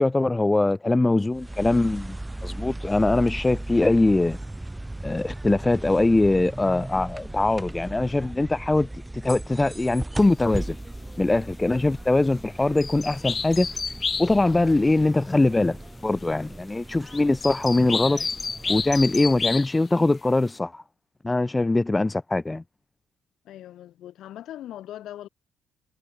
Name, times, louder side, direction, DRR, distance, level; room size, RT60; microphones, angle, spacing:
voice 1, 0.0-2.2 2.4-4.4 5.0-8.9 9.2-10.8 11.2-13.7 14.2-15.8 16.0-18.2 18.7-20.8 21.2-22.6, left 2 dB, 15° left, 1.2 m, -22 dB
sound 1, 1.3-19.8, right 1 dB, 10° right, 2.5 m, -37 dB
sound 2, 10.2-10.3 11.8-11.9 12.8-15.1 16.2-16.4 16.7-20.0, left 5 dB, 35° left, 0.8 m, -31 dB
voice 2, 23.4-25.3, left 12 dB, 80° left, 4.3 m, -40 dB
cardioid pair, 90°, 0 cm